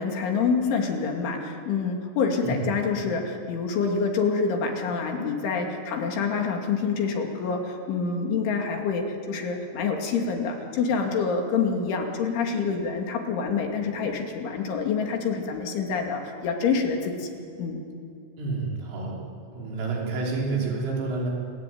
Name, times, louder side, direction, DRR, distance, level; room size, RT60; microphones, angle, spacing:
voice 1, 0.0-17.3 17.6-17.8, left 5 dB, 70° left, 2 dB, 4.9 m, -27 dB
voice 2, 18.4-21.3, right 3 dB, 75° right, -3 dB, 7.7 m, -29 dB
29.0 x 22.0 x 9.4 m, 2.6 s
omnidirectional pair, 5.9 m